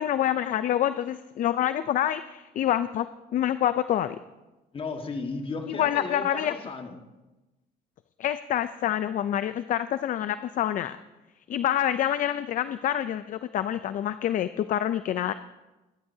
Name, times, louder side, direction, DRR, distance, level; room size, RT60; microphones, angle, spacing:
voice 1, 0.0-3.1 3.3-4.2 5.7-6.5 8.2-11.0 11.5-15.3, left 11 dB, 50° left, 12 dB, 0.5 m, -27 dB
voice 2, 4.7-7.0, left 4 dB, 30° left, 4 dB, 1.6 m, -35 dB
21.5 x 11.5 x 2.8 m, 1.1 s
cardioid pair, 110°, 17 cm